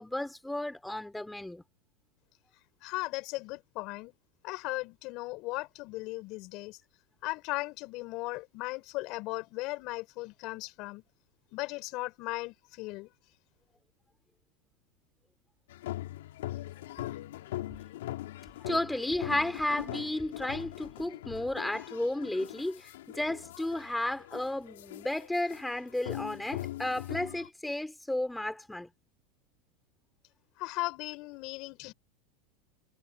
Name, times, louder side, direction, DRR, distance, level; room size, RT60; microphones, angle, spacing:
voice 1, 0.0-1.6 18.6-28.9, left 1 dB, 5° left, 3.5 m, -33 dB
voice 2, 2.8-4.1 4.4-6.8 7.2-11.0 11.5-13.1 30.6-31.9, left 22 dB, 55° left, 5.8 m, -37 dB
sound 1, 15.7-27.5, left 15 dB, 80° left, 3.1 m, -41 dB
hypercardioid pair, 110°, 0 cm